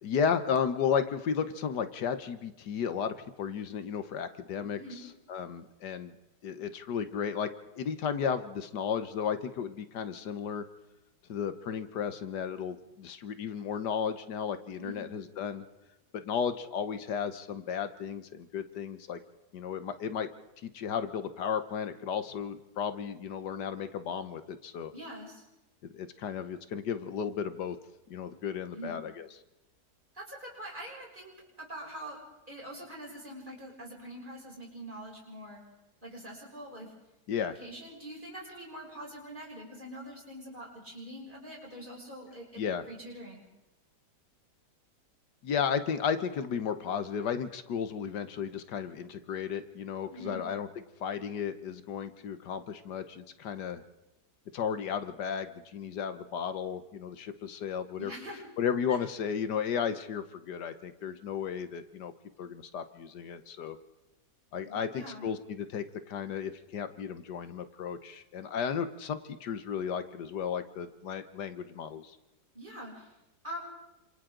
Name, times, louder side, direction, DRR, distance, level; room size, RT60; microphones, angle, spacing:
voice 1, 0.0-6.1 6.4-7.5 7.8-10.6 11.3-15.6 16.1-19.2 19.5-20.3 20.6-24.9 25.8-27.8 28.1-29.3 37.3-37.5 42.6-42.8 45.4-50.7 51.0-53.8 54.5-58.1 58.6-62.1 62.4-63.8 64.5-72.2, left 7 dB, 80° left, 10 dB, 1.6 m, -34 dB
voice 2, 14.8-15.1 24.9-25.4 28.7-29.0 30.1-32.2 32.5-35.6 36.0-36.9 37.6-43.4 50.1-50.4 58.0-58.4 58.9-59.0 64.7-65.3 72.5-73.1 73.4-73.6, right 1 dB, 30° right, -3 dB, 7.1 m, -44 dB
29.0 x 27.0 x 3.9 m, 0.96 s
omnidirectional pair, 1.8 m